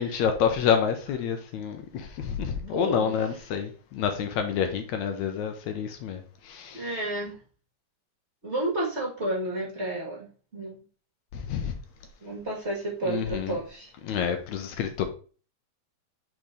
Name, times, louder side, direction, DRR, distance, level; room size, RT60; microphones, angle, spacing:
voice 1, 0.0-6.9 11.3-11.8 13.1-13.6 14.0-15.1, left 7 dB, 75° left, 2.0 m, -28 dB
voice 2, 2.7-3.1 6.7-7.4 8.4-10.8 12.2-13.9, right 1 dB, 30° right, 1.4 m, -31 dB
5.2 x 4.5 x 4.8 m
omnidirectional pair, 3.5 m